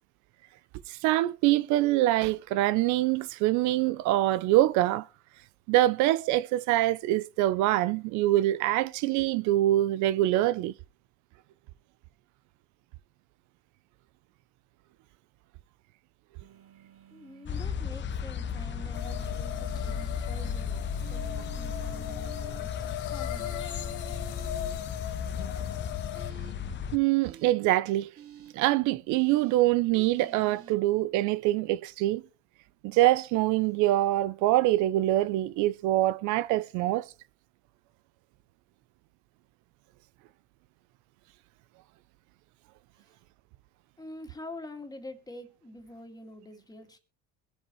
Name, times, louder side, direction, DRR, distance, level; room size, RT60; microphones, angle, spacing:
voice 1, 0.9-5.1 5.7-10.7 26.9-28.1 28.5-32.2 32.8-37.1, right 15 dB, 75° right, 0.5 m, -24 dB
sound 1, 16.4-17.6 18.5-20.1 21.0-22.6 23.4-24.7 26.1-26.5 27.2-27.5 28.2-28.5 29.1-29.6 30.1-30.7, right 7 dB, 50° right, 2.0 m, -50 dB
voice 2, 17.1-23.6 44.0-47.0, left 1 dB, 15° left, 2.2 m, -46 dB
sound 2, 17.5-27.0, left 7 dB, 40° left, 0.7 m, -35 dB
sound 3, 18.9-26.3, left 12 dB, 80° left, 1.5 m, -39 dB
22.0 x 7.8 x 3.1 m
supercardioid pair, 100°, 30 cm